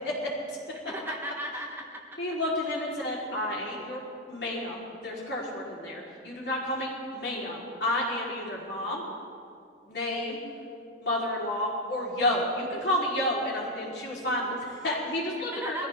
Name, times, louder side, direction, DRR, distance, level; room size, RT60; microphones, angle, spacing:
voice 1, 0.0-0.6 2.2-4.0 4.3-9.0 9.8-10.4 11.0-15.9, left 1 dB, 70° left, -5 dB, 4.2 m, -30 dB
voice 2, 0.7-2.2 3.7-3.8 15.4-15.8, equal, 15° right, 0 dB, 1.3 m, -37 dB
22.0 x 14.5 x 3.7 m, 2.4 s
head